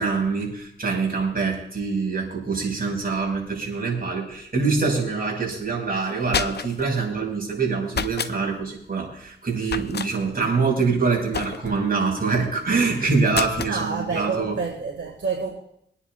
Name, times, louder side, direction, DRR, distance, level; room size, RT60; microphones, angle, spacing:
voice 1, 0.0-14.5, right 4 dB, 50° right, 5.1 m, -25 dB
sound 1, 6.0-6.9 7.9-8.4 9.7-10.1 11.3-11.9 13.3-13.8, left 6 dB, 55° left, 0.6 m, -29 dB
voice 2, 13.7-15.5, right 5 dB, 75° right, 1.8 m, -28 dB
25.0 x 9.8 x 2.4 m
cardioid pair, 60°, 20 cm